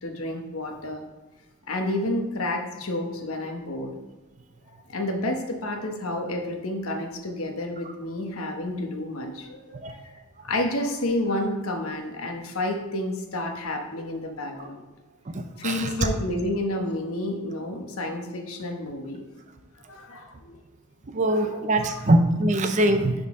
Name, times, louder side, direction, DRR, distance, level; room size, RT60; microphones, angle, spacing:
voice 1, 0.0-1.1 1.7-4.0 4.7-10.1 10.4-14.8 15.6-19.3 19.9-20.5 21.3-22.0, left 1 dB, 70° left, 4 dB, 1.0 m, -30 dB
voice 2, 15.3-15.9 21.1-23.1, right 1 dB, 35° right, 7 dB, 0.5 m, -22 dB
11.0 x 4.0 x 3.6 m, 1.2 s
head